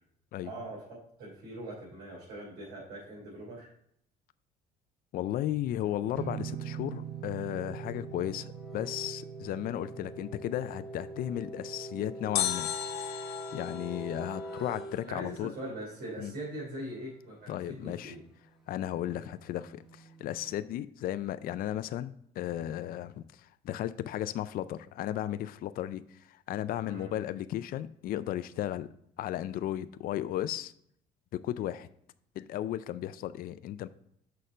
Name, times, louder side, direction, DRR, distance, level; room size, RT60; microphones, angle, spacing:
voice 1, 0.4-3.7 15.0-18.2 19.1-19.2 26.8-27.1, right 1 dB, 85° right, -6 dB, 3.2 m, -42 dB
voice 2, 5.1-12.7 13.2-15.5 16.2-16.3 17.5-18.2 18.7-28.9 29.2-30.7 31.3-31.9 32.4-33.9, left 12 dB, 60° left, 13 dB, 0.4 m, -35 dB
sound 1, 5.8-15.8 17.9-20.6, right 1 dB, ahead, 1.1 m, -45 dB
sound 2, 6.1-13.7, right 11 dB, 60° right, 0.6 m, -44 dB
sound 3, 12.4-15.4 15.7-15.8, left 11 dB, 80° left, 1.3 m, -36 dB
6.5 x 5.3 x 4.2 m, 0.70 s
cardioid pair, 110°, 17 cm